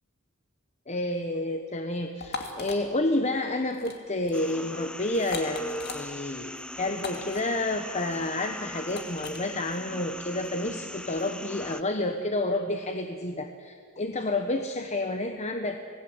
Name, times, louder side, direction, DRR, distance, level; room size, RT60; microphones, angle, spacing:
voice 1, 0.9-15.8, left 2 dB, 30° left, 6 dB, 1.1 m, -30 dB
sound 1, 2.2-2.8 3.7-4.0 4.2-4.5 5.1-6.0 7.0-7.4 8.9-9.4, left 4 dB, 45° left, 2.6 m, -37 dB
sound 2, 4.3-11.8, left 1 dB, 5° left, 0.5 m, -41 dB
26.0 x 19.0 x 8.0 m, 2.1 s
head